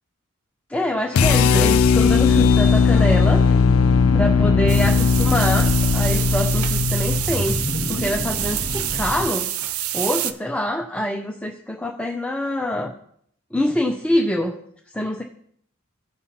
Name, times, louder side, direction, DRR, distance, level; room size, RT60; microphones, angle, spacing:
voice 1, 0.7-3.4 4.1-9.5 9.9-12.9 13.5-14.5 14.9-15.2, left 1 dB, 5° left, 0 dB, 0.6 m, -25 dB
sound 1, 1.1-7.3, left 5 dB, 75° left, 0.4 m, -17 dB
sound 2, 1.7-9.3, left 1 dB, 45° left, 0.8 m, -28 dB
sound 3, 4.7-10.3, right 12 dB, 85° right, 0.5 m, -27 dB
16.0 x 5.6 x 2.9 m, 0.66 s
head